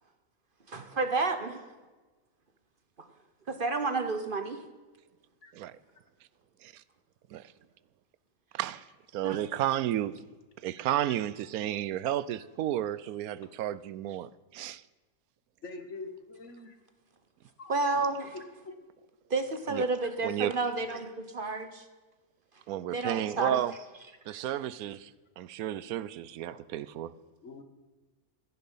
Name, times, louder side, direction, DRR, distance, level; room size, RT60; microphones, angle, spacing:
voice 1, 0.7-1.6 3.5-4.6 9.2-9.4 17.7-18.3 19.3-21.8 22.9-23.6 24.3-24.4 26.5-26.6, right 3 dB, 40° right, 9 dB, 1.1 m, -31 dB
voice 2, 8.5-8.9 9.1-10.2 10.6-14.8 19.7-19.8 20.2-20.5 22.7-23.7 24.3-27.1, right 12 dB, 80° right, 17 dB, 1.0 m, -32 dB
voice 3, 15.6-16.7 17.6-17.7 18.3-18.8 27.4-27.6, left 3 dB, 55° left, 7 dB, 1.6 m, -44 dB
15.0 x 10.5 x 5.5 m, 1.3 s
omnidirectional pair, 1.5 m